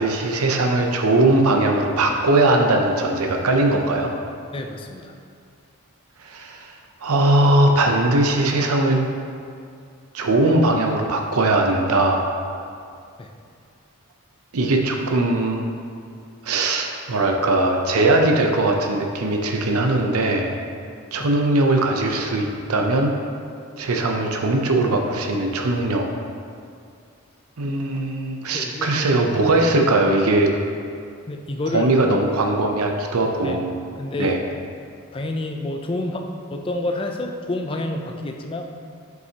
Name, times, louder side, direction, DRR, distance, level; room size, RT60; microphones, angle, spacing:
voice 1, 0.0-4.1 6.2-6.7 7.0-9.1 10.1-12.2 14.5-15.6 16.4-20.5 21.1-23.1 23.8-26.1 27.6-30.5 31.7-33.7 34.2-34.4, right 2 dB, 90° right, 2 dB, 0.6 m, -20 dB
voice 2, 4.5-5.1 13.2-13.3 21.2-21.3 28.5-28.9 31.3-31.9 33.4-33.6 34.0-34.4 35.1-38.6, left 2 dB, 25° left, 3 dB, 0.4 m, -28 dB
7.7 x 5.6 x 2.9 m, 2.3 s
head